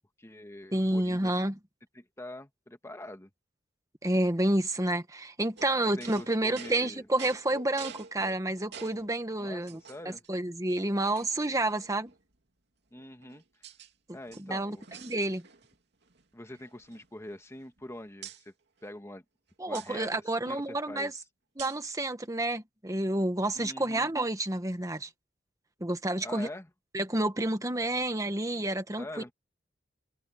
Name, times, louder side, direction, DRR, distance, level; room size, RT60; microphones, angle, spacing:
voice 1, 0.2-1.4 1.9-3.3 6.0-7.1 9.4-10.2 12.9-13.4 14.1-14.8 16.3-18.5 18.8-19.2 19.7-21.1 23.5-24.1 26.2-26.7 29.0-29.3, left 1 dB, 15° left, 1.6 m, -44 dB
voice 2, 0.7-1.5 4.0-9.8 10.3-12.1 14.5-14.8 15.0-15.4 19.6-21.1 21.6-25.1 25.8-26.5 26.9-29.1, right 1 dB, 20° right, 1.5 m, -29 dB
Metal Case Installation, 5.6-9.1 9.7-10.3 10.7-10.8 11.1-12.2 13.0-13.9 14.2-15.8 16.0-16.2 16.5-17.8 18.2-18.4 19.7-19.9 21.6-21.9, right 6 dB, 60° right, 2.8 m, -47 dB
head